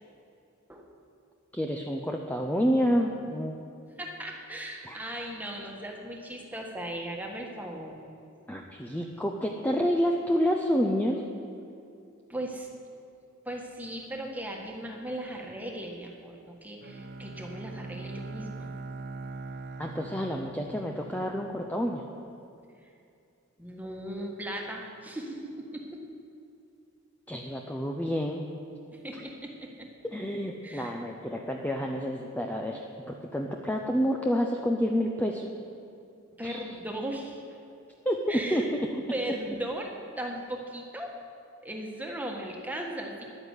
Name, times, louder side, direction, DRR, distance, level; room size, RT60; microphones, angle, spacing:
voice 1, 1.5-3.6 4.8-5.0 8.5-11.2 19.8-22.0 27.3-28.4 30.1-35.5 36.4-36.6 38.0-38.8, equal, 10° left, 1 dB, 0.7 m, -29 dB
voice 2, 4.0-8.0 12.3-12.7 13.4-18.7 22.8-22.9 23.6-26.0 28.9-29.9 30.6-30.9 36.4-37.6 38.3-38.7 39.1-41.1 41.6-43.2, right 1 dB, 10° right, 0 dB, 1.6 m, -37 dB
Bowed string instrument, 16.8-21.8, right 3 dB, 50° right, 0.9 m, -41 dB
11.0 x 9.9 x 8.2 m, 2.5 s
head